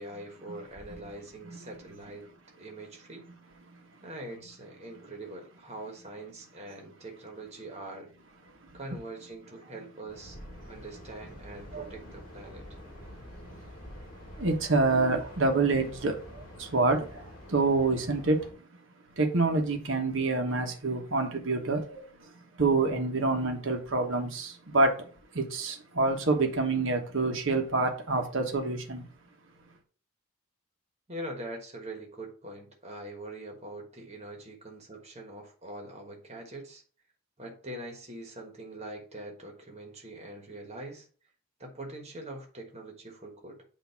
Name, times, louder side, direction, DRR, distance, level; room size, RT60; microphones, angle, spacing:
voice 1, 0.0-2.3 2.6-3.2 4.0-8.1 8.7-10.4 10.6-12.7 31.1-36.8 37.4-41.1 41.6-43.6, right 1 dB, 30° right, 1.4 m, -43 dB
sound 1, 10.1-18.5, left 1 dB, 40° left, 2.5 m, -47 dB
voice 2, 13.0-18.7 19.2-29.1, right 3 dB, 60° right, 1.2 m, -28 dB
8.3 x 2.8 x 5.7 m
head